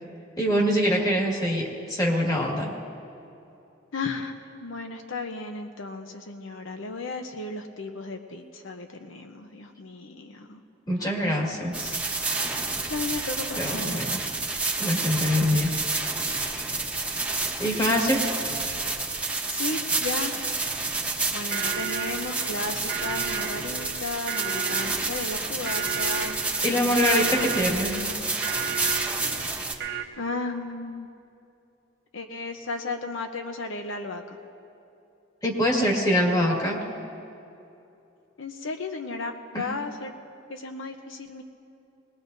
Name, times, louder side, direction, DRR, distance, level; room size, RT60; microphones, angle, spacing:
voice 1, 0.4-2.7 10.9-12.0 13.6-14.2 14.8-15.7 16.6-16.7 17.6-18.2 26.6-28.0 35.4-36.8 39.5-39.7, equal, 20° left, -2 dB, 1.9 m, -24 dB
voice 2, 3.9-10.6 11.0-11.5 12.2-14.2 19.5-20.4 21.3-26.4 26.7-27.6 30.2-31.1 32.1-34.4 38.4-40.1 40.5-41.4, left 3 dB, 80° left, 5 dB, 0.8 m, -35 dB
sound 1, 11.7-29.7, right 3 dB, 5° right, 1.0 m, -29 dB
sound 2, 21.5-30.0, right 8 dB, 55° right, 0.7 m, -34 dB
21.0 x 19.5 x 2.7 m, 2.7 s
head